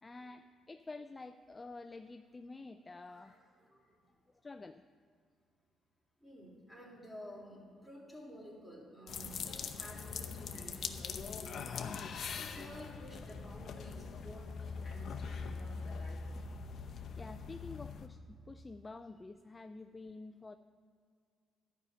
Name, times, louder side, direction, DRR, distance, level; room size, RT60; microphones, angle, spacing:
voice 1, 0.0-3.3 4.4-4.8 17.2-20.6, left 3 dB, 25° left, 9 dB, 0.4 m, -49 dB
voice 2, 3.1-3.8 6.2-11.8 12.4-16.2, equal, ahead, -4 dB, 3.5 m, -52 dB
sound 1, 9.1-18.1, left 5 dB, 60° left, 0.7 m, -42 dB
12.0 x 5.6 x 8.7 m, 2.2 s
cardioid pair, 90°, 0 cm